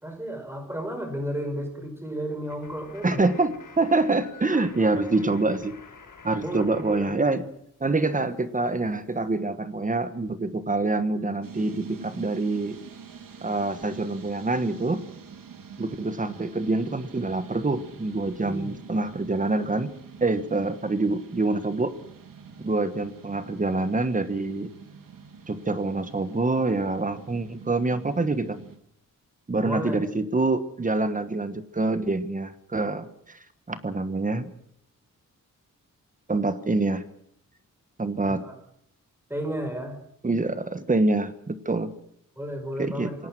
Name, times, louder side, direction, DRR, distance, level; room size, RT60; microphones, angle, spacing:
voice 1, 0.0-3.2 4.5-4.6 4.9-5.3 6.4-7.4 18.4-18.8 29.6-30.0 38.3-38.5 39.3-40.0 42.4-43.2, equal, 5° right, 5 dB, 5.0 m, -33 dB
sound 1, 2.5-7.1 7.4-9.4, left 5 dB, 70° left, 5.7 m, -50 dB
voice 2, 3.0-5.8 6.2-7.4 7.8-12.8 13.4-15.0 15.8-19.9 20.2-21.9 22.6-24.7 25.5-28.6 29.5-33.4 33.7-34.5 36.3-37.0 38.0-38.5 40.2-41.9 42.8-43.1, right 2 dB, 25° right, 12 dB, 1.3 m, -26 dB
sound 2, 11.4-28.8, right 6 dB, 80° right, 2.8 m, -46 dB
27.5 x 18.0 x 6.2 m, 0.73 s
wide cardioid pair, 170°, 33 cm